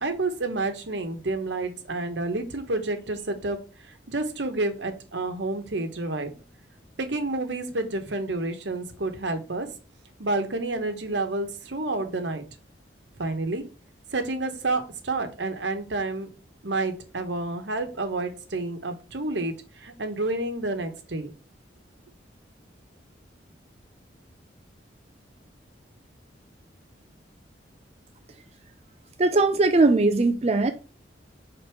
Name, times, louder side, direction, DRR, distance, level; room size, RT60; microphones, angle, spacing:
voice 1, 0.0-3.6 4.1-6.3 7.0-9.7 10.2-12.4 13.2-13.6 14.1-16.3 16.6-21.3, right 2 dB, 75° right, 1.1 m, -29 dB
voice 2, 29.2-30.7, right 3 dB, 35° right, 0.5 m, -20 dB
5.4 x 3.9 x 4.6 m
head